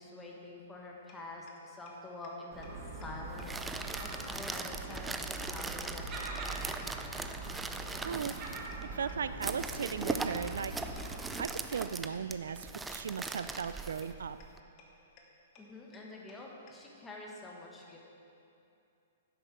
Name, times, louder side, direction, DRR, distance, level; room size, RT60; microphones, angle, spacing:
voice 1, 0.0-2.7 3.0-6.9 15.6-18.0, left 2 dB, 10° left, -2 dB, 1.5 m, -47 dB
sound 1, 1.1-1.2 1.5-1.6 1.9-2.0 2.2-2.3 2.6-2.7 3.0-3.1 3.4-3.5 3.7-3.8 4.1-4.2 4.5-4.6 4.9-5.0 5.3-5.4 5.7-5.8 6.0-6.1 6.4-6.5 6.8-6.9 7.2-7.3 7.6-7.7 7.9-8.0 8.3-8.4 8.7-8.8 9.1-9.2 9.5-9.6 9.8-9.9 10.2-10.3 10.6-10.7 11.0-11.1 11.4-11.5 11.7-11.8 12.1-12.2 12.5-12.6 12.9-13.0 13.3-13.4 13.6-13.7 14.0-14.1 14.4-14.5 14.8-14.9 15.2-15.3 15.6-15.7 15.9-16.0 16.3-16.4 16.7-16.8, left 8 dB, 35° left, 1.4 m, -56 dB
Gull seagull, 2.5-11.4, right 2 dB, 30° right, 1.6 m, -43 dB
sound 2, 3.2-14.6, right 3 dB, 10° right, 0.4 m, -40 dB
voice 2, 8.0-10.7 11.4-14.4, right 6 dB, 80° right, 13 dB, 0.3 m, -37 dB
10.5 x 7.7 x 4.8 m, 2.7 s
hypercardioid pair, 135°, 0 cm